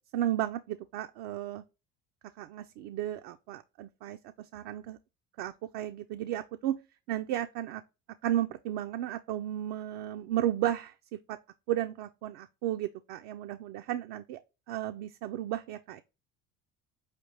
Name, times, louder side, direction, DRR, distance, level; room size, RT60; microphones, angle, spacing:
voice 1, 0.1-1.6 2.4-4.2 4.5-5.0 5.4-6.8 7.1-7.8 8.2-10.9 11.3-11.4 11.7-14.4 14.7-16.0, right 12 dB, 70° right, 0.5 m, -33 dB
4.7 x 3.3 x 2.8 m
hypercardioid pair, 75°, 37 cm